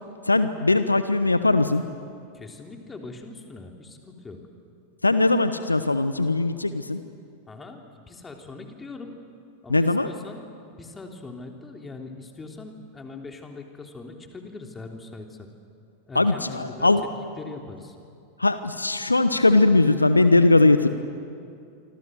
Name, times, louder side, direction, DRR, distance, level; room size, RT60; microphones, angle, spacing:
voice 1, 0.2-1.8 5.0-7.0 9.7-10.1 16.1-17.0 18.4-20.9, left 2 dB, 80° left, 12 dB, 1.0 m, -20 dB
voice 2, 2.3-4.4 7.5-9.2 9.6-15.5 16.1-17.1 17.4-18.0, left 3 dB, 15° left, 3 dB, 3.3 m, -41 dB
26.5 x 25.5 x 7.8 m, 2.5 s
figure-of-eight pair, 90°, 0 cm